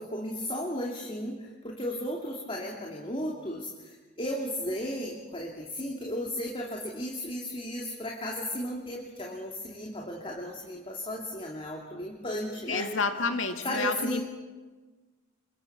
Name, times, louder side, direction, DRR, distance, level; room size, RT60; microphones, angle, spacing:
voice 1, 0.0-12.9 13.6-14.2, equal, 25° left, -1 dB, 2.7 m, -35 dB
voice 2, 12.7-14.2, left 4 dB, 75° left, 6 dB, 2.2 m, -29 dB
28.0 x 23.5 x 6.0 m, 1.3 s
head